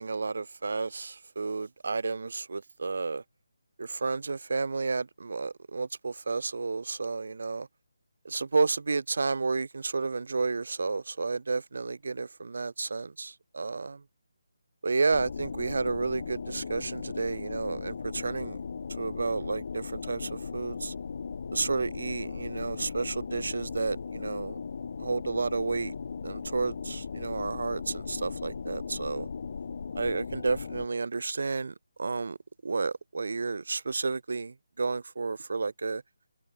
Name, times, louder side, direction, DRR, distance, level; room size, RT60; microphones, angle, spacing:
voice 1, 0.0-3.2 3.8-7.7 8.2-14.0 14.8-18.6 19.0-20.9 21.5-24.6 25.0-25.9 26.2-29.3 30.0-32.4 32.6-36.0, right 4 dB, 55° right, 0.6 m, -31 dB
sound 1, 15.1-30.9, left 5 dB, 45° left, 5.5 m, -38 dB
open air
figure-of-eight pair, 150°, 0 cm